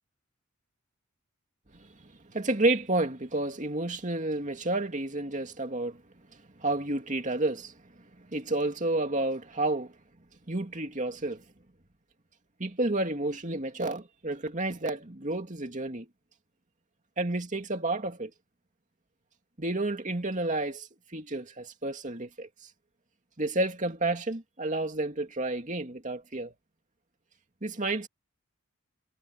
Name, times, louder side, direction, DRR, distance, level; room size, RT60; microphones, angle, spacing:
voice 1, 2.2-6.0 6.6-7.7 8.2-9.9 10.5-11.4 12.6-16.1 17.2-18.3 19.6-22.5 23.4-26.5 27.6-28.1, right 2 dB, 35° right, 2.4 m, -30 dB
head